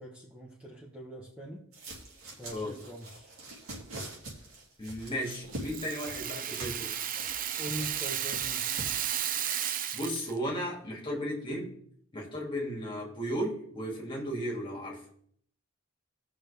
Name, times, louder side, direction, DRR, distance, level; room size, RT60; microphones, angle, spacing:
voice 1, 0.0-1.6 2.4-3.3 7.6-8.7, equal, 5° right, -4 dB, 1.3 m, -42 dB
sound 1, 1.7-9.1, right 2 dB, 85° right, 2.8 m, -44 dB
voice 2, 4.8-6.9 9.9-11.7 12.1-15.0, equal, 25° left, -1 dB, 2.7 m, -35 dB
Rattle (instrument), 5.3-10.4, right 10 dB, 40° right, 0.5 m, -33 dB
17.5 x 6.2 x 3.5 m, 0.62 s
head